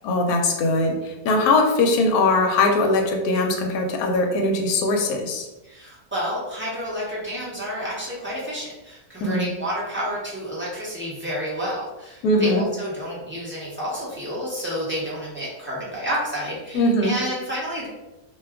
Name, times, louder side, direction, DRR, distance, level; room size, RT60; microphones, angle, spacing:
voice 1, 0.0-5.5 9.2-9.5 12.2-12.7 16.7-17.2, left 2 dB, 75° left, 2 dB, 1.0 m, -21 dB
voice 2, 5.6-17.9, equal, 15° right, -8 dB, 0.5 m, -30 dB
2.6 x 2.3 x 3.4 m, 1.0 s
omnidirectional pair, 1.7 m